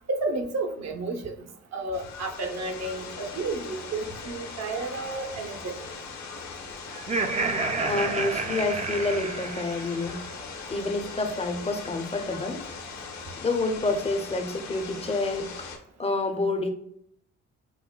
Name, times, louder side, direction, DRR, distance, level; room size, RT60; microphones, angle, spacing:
voice 1, 0.1-1.4 1.7-5.7, right 2 dB, 60° right, 5 dB, 0.8 m, -31 dB
sound 1, 1.9-15.8, left 4 dB, 65° left, 0.9 m, -40 dB
Laughter, 6.9-10.2, right 3 dB, 25° right, 0.4 m, -30 dB
voice 2, 7.8-10.2 10.7-12.7 13.4-15.5 16.0-16.7, left 2 dB, 20° left, 6 dB, 0.6 m, -28 dB
5.6 x 2.1 x 2.2 m, 0.70 s
cardioid pair, 90°, 30 cm